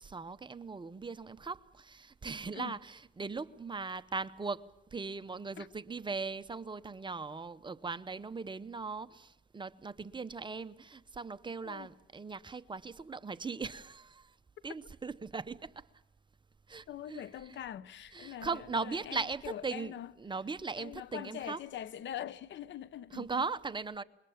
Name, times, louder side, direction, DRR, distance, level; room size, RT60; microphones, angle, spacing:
voice 1, 0.0-14.4 14.6-15.8 16.7-17.2 17.5-17.6 18.1-19.9 20.2-21.6 23.1-24.0, right 4 dB, 25° right, 0.8 m, -39 dB
voice 2, 16.9-20.1 20.8-23.5, left 10 dB, 70° left, 0.9 m, -43 dB
27.0 x 22.0 x 7.3 m
cardioid pair, 90°, 20 cm